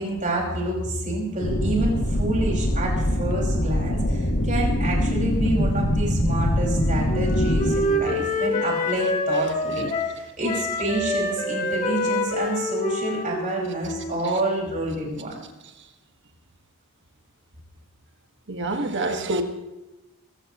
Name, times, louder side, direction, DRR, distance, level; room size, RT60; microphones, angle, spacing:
voice 1, 0.0-15.4, right 1 dB, 35° right, -2 dB, 5.6 m, -28 dB
sound 1, 1.4-7.7, left 1 dB, 55° left, 1.7 m, -23 dB
Wind instrument woodwind instrument, 6.6-10.2 10.4-14.3, left 1 dB, 35° left, 2.5 m, -27 dB
voice 2, 18.5-19.4, right 2 dB, 55° right, 5 dB, 1.8 m, -26 dB
24.0 x 15.5 x 3.1 m, 1.0 s
head